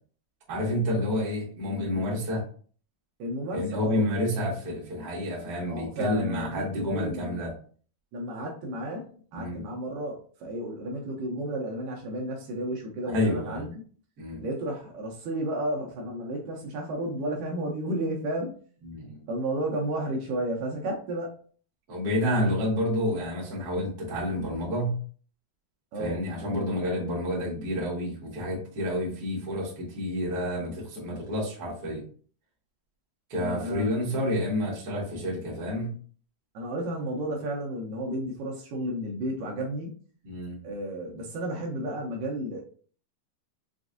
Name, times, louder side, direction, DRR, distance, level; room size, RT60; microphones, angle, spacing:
voice 1, 0.5-2.4 3.5-7.5 9.3-9.6 13.0-13.7 14.2-14.4 18.8-19.2 21.9-25.0 26.0-32.0 33.3-35.9 40.2-40.6, left 1 dB, 55° right, -5 dB, 1.0 m, -29 dB
voice 2, 3.2-4.2 5.7-7.4 8.1-13.8 14.4-18.6 19.3-21.4 25.9-26.2 33.4-34.2 36.5-40.0 40.6-42.6, right 1 dB, 75° right, -1 dB, 2.2 m, -32 dB
6.1 x 2.6 x 2.5 m, 0.44 s
omnidirectional pair, 4.4 m